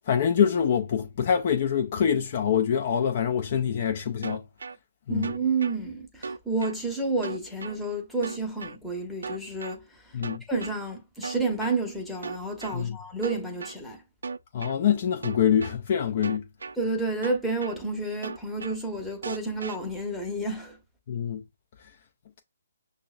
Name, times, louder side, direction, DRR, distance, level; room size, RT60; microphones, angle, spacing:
voice 1, 0.1-4.4 5.1-5.3 10.1-10.4 12.7-13.0 14.5-16.4 21.1-21.4, left 8 dB, 45° left, 0.4 m, -25 dB
sound 1, 4.2-4.8 5.2-5.8 6.2-6.8 7.2-7.8 8.2-8.8 9.2-9.8 10.2-10.8 11.2-11.8 12.2-12.8 13.2-13.8 14.2-14.8 15.2-15.8 16.2-16.8 17.2-17.8 18.2-18.8 19.2-19.8, right 4 dB, 75° right, 0.3 m, -36 dB
voice 2, 5.1-10.0 10.5-14.0 16.8-20.8, right 3 dB, ahead, 0.8 m, -30 dB
5.9 x 2.1 x 2.3 m
figure-of-eight pair, 145°, 0 cm